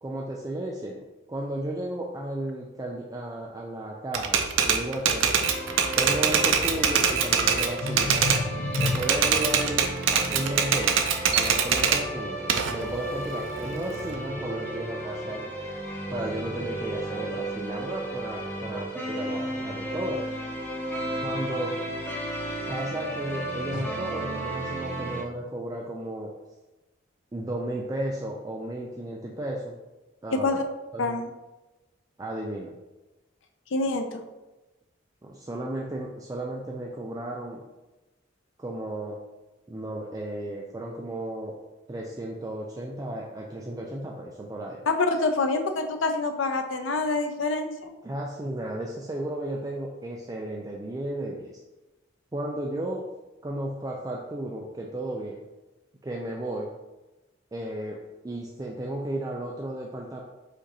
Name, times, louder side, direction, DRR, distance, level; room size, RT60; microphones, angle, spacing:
voice 1, 0.0-5.4 6.0-8.2 8.8-11.0 11.3-15.5 16.1-20.2 21.2-21.7 22.7-26.3 27.3-29.8 30.2-30.6 30.9-31.2 32.2-32.7 35.2-37.6 38.6-39.2 39.7-41.6 41.9-44.8 48.0-51.6 52.3-53.0 53.4-55.4 56.0-56.7 57.5-58.0 58.2-60.2, right 1 dB, 20° right, -2 dB, 0.3 m, -34 dB
Typewriter, 4.1-8.4 8.7-12.0 12.5-14.2, right 7 dB, 80° right, 0.5 m, -23 dB
sound 1, 5.4-25.2, right 1 dB, 10° left, 0.7 m, -34 dB
voice 2, 7.8-9.0 23.7-23.8 30.3-30.6 31.0-31.3 33.7-34.2 44.9-47.9, left 3 dB, 75° left, 7 dB, 0.5 m, -27 dB
5.1 x 2.5 x 4.1 m, 1.1 s
head